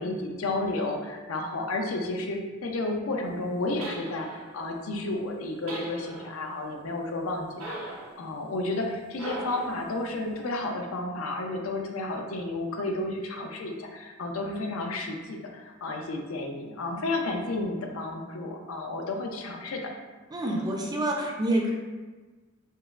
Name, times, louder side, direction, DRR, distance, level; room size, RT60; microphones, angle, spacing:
voice 1, 0.0-19.9, left 2 dB, 80° left, 2 dB, 0.5 m, -32 dB
sound 1, 3.8-4.5 5.7-6.4 7.6-8.2 9.1-9.9, right 1 dB, 85° right, 0.6 m, -39 dB
voice 2, 20.3-21.7, right 1 dB, 20° right, 0 dB, 0.4 m, -27 dB
5.2 x 2.0 x 2.4 m, 1.3 s
head